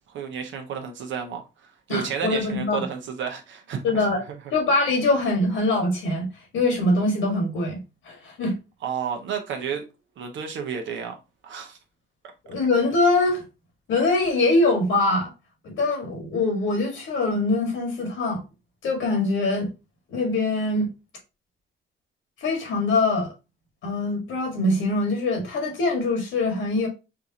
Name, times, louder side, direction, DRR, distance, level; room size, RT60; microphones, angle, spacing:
voice 1, 0.1-1.4 1.9-4.1 8.8-9.8 10.2-11.1 11.4-11.8, right 7 dB, 70° right, 0.8 m, -31 dB
voice 2, 1.9-2.8 3.8-4.2 4.5-8.6 12.4-13.4 13.9-15.3 15.6-18.4 18.8-19.7 20.1-20.9 22.4-23.3 23.8-26.9, left 2 dB, 80° left, 1.7 m, -23 dB
4.6 x 2.5 x 2.8 m
cardioid pair, 90°, 20 cm